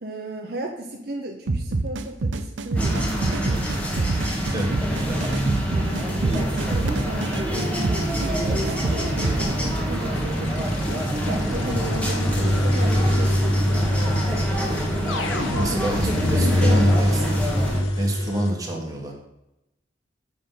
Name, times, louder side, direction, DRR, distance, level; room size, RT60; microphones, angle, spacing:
voice 1, 0.0-3.7 5.7-14.0 15.5-17.0, right 1 dB, 50° right, 1 dB, 0.9 m, -34 dB
sound 1, 1.5-9.4, right 3 dB, 80° right, 0.6 m, -27 dB
sound 2, 2.8-17.8, equal, 5° left, 1.5 m, -26 dB
sound 3, 9.9-18.5, left 1 dB, 85° left, 1.0 m, -24 dB
voice 2, 15.5-17.2 18.0-19.1, right 1 dB, 20° right, -1 dB, 1.5 m, -27 dB
7.6 x 6.0 x 5.6 m, 0.88 s
head